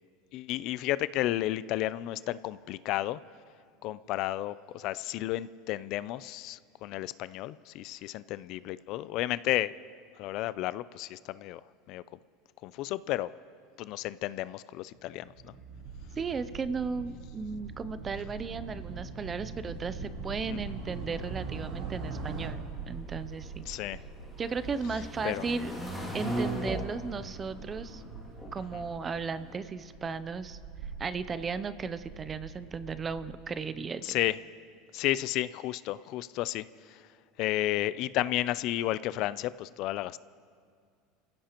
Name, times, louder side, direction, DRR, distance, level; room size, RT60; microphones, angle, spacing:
voice 1, 0.3-3.2 3.8-9.7 10.2-11.6 11.9-12.0 12.6-13.3 13.8-15.3 20.5-20.6 23.7-24.0 25.2-25.5 28.7-28.8 34.0-34.4 34.9-37.0 37.4-40.2, left 15 dB, 50° left, 17 dB, 0.3 m, -32 dB
Motorcycle, 14.9-22.5, right 3 dB, 50° right, 3.5 m, -42 dB
sound 1, 15.7-33.3, right 5 dB, 85° right, 2.1 m, -46 dB
voice 2, 16.2-23.7 24.4-25.7 26.1-28.0 28.5-30.6 31.0-34.2, right 5 dB, 20° right, 13 dB, 0.5 m, -35 dB
sound 2, 21.3-29.5, right 1 dB, ahead, 2.5 m, -39 dB
29.5 x 16.0 x 3.0 m, 2.2 s
supercardioid pair, 155°, 0 cm